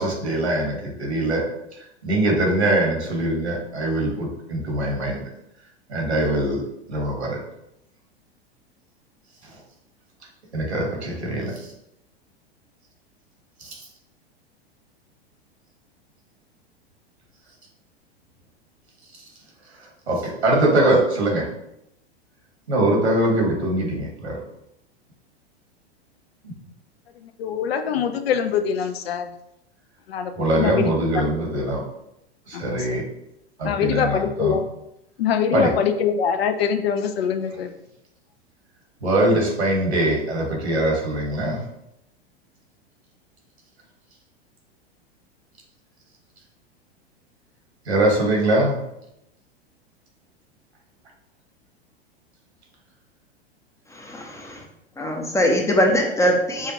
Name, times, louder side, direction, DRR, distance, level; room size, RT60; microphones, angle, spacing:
voice 1, 0.0-1.4 2.0-5.2 5.9-6.6 6.9-7.4 9.4-9.5 10.5-11.7 13.6-13.9 19.8-21.5 22.7-24.4 30.3-31.8 32.5-33.0 33.6-34.6 35.5-35.7 39.0-41.6 47.8-48.8, right 1 dB, 80° right, -1 dB, 1.5 m, -22 dB
voice 2, 27.2-29.3 30.1-30.9 31.5-31.7 32.5-33.0 33.6-34.6 35.2-37.7, left 7 dB, 70° left, 7 dB, 0.5 m, -24 dB
voice 3, 53.9-54.6 55.0-56.7, equal, 10° left, 1 dB, 0.5 m, -21 dB
5.6 x 2.4 x 2.9 m, 0.83 s
figure-of-eight pair, 95°, 32 cm